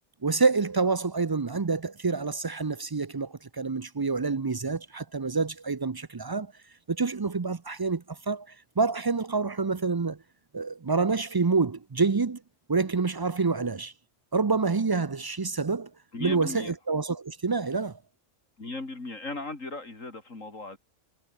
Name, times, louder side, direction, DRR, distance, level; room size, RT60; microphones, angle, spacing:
voice 1, 0.2-6.5 6.9-10.2 10.5-12.4 12.7-13.9 14.3-15.9 16.2-18.0, right 4 dB, 40° right, 0.3 m, -27 dB
voice 2, 16.1-16.7 18.6-20.8, left 2 dB, 75° left, 4.5 m, -37 dB
omnidirectional pair, 1.3 m